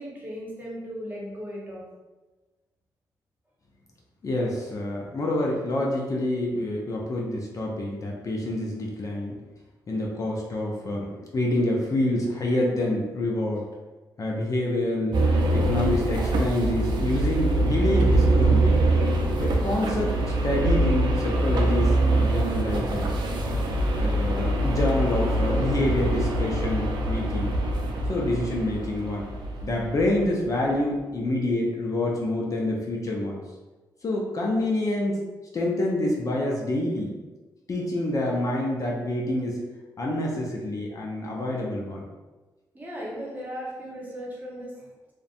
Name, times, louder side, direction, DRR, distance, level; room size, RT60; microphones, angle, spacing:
voice 1, 0.0-1.8 42.7-44.9, equal, 20° right, -5 dB, 1.0 m, -36 dB
voice 2, 4.2-9.4 9.9-13.6 14.2-15.2 15.5-18.9 19.4-20.2 20.4-23.1 23.9-27.5 28.1-29.3 29.6-33.4 34.0-35.2 35.5-37.1 37.7-39.6 40.0-42.0, left 1 dB, 40° left, -2 dB, 0.5 m, -27 dB
sound 1, 15.1-30.3, right 1 dB, 65° right, 0.4 m, -24 dB
2.4 x 2.2 x 2.5 m, 1.2 s
cardioid pair, 60°, 8 cm